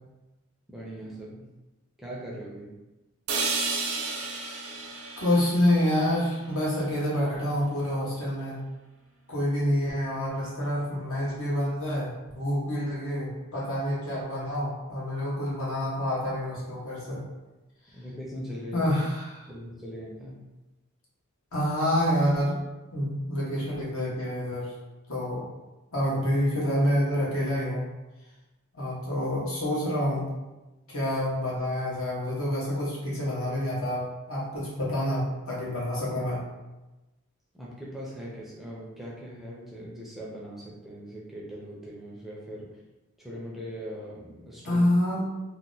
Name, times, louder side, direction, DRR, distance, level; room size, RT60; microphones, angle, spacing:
voice 1, 0.7-1.5 2.0-2.7 17.9-18.9 19.5-20.5 37.5-42.7 43.2-44.9, equal, ahead, -6 dB, 0.4 m, -40 dB
sound 1, 3.3-7.3, right 4 dB, 75° right, 0.5 m, -33 dB
voice 2, 5.2-8.6 9.3-17.2 18.7-19.5 21.5-22.6 22.9-24.7 25.1-25.4 25.9-27.8 28.7-30.3 30.9-36.4 44.6-45.2, left 1 dB, 70° left, -6 dB, 1.1 m, -27 dB
2.8 x 2.1 x 3.8 m, 1.1 s
head